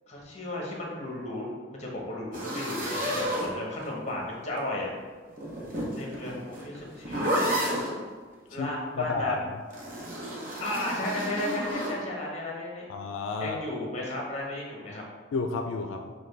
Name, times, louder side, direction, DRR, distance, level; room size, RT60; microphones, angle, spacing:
voice 1, 0.1-4.9 5.9-7.4 8.5-9.4 10.6-12.9 13.4-15.0, left 1 dB, 35° left, -2 dB, 1.0 m, -34 dB
sound 1, 2.3-4.1 5.3-8.0 9.7-12.0, equal, 45° right, 0.9 m, -31 dB
voice 2, 9.0-9.6 12.9-13.6 15.3-16.1, left 4 dB, 90° left, 4 dB, 0.4 m, -31 dB
6.4 x 2.2 x 3.2 m, 1.5 s
head